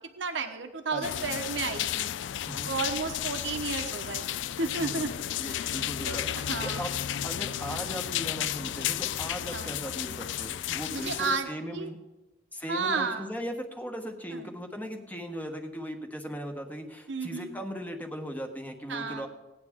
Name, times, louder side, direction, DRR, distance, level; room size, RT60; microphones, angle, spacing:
voice 1, 0.2-2.1 2.7-4.3 4.6-5.1 5.4-5.8 6.1-6.9 9.5-9.7 10.9-11.9 12.7-13.3 14.3-14.4 17.1-17.5 18.9-19.3, right 4 dB, 80° right, 6 dB, 1.0 m, -32 dB
voice 2, 0.9-1.2 2.5-2.7 4.8-5.1 5.4-12.0 12.5-19.3, equal, 10° left, 4 dB, 1.3 m, -38 dB
sound 1, 1.0-11.4, left 11 dB, 80° left, 0.4 m, -33 dB
18.0 x 9.6 x 3.6 m, 1.1 s
head